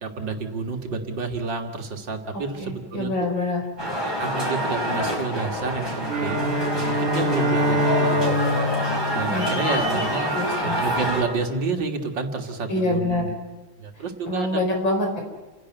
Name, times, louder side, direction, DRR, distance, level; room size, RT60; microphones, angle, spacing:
voice 1, 0.0-3.1 4.2-8.4 9.1-13.3 13.8-14.6, right 4 dB, 65° right, 4 dB, 2.6 m, -29 dB
voice 2, 2.3-3.6 9.3-9.5 10.3-10.7 12.7-13.3 14.3-15.2, left 2 dB, 70° left, 2 dB, 5.4 m, -25 dB
sound 1, 3.8-11.2, equal, 10° left, 4.9 m, -26 dB
Bowed string instrument, 6.0-10.3, equal, 40° right, 2.5 m, -25 dB
29.5 x 11.5 x 9.3 m, 1.2 s
omnidirectional pair, 2.1 m